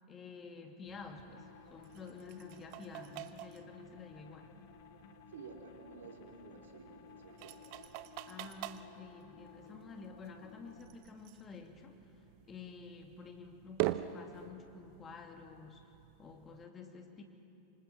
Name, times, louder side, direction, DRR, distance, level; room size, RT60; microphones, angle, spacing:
voice 1, 0.1-4.5 8.3-15.9 16.2-17.2, left 4 dB, 20° left, 4 dB, 2.5 m, -50 dB
sound 1, 0.9-16.7, right 16 dB, 45° right, 0.9 m, -46 dB
sound 2, 1.3-10.9, left 7 dB, 50° left, 1.7 m, -57 dB
voice 2, 5.3-7.7, right 5 dB, 65° right, 2 dB, 3.3 m, -52 dB
26.0 x 26.0 x 7.4 m, 2.8 s
figure-of-eight pair, 90°, 0 cm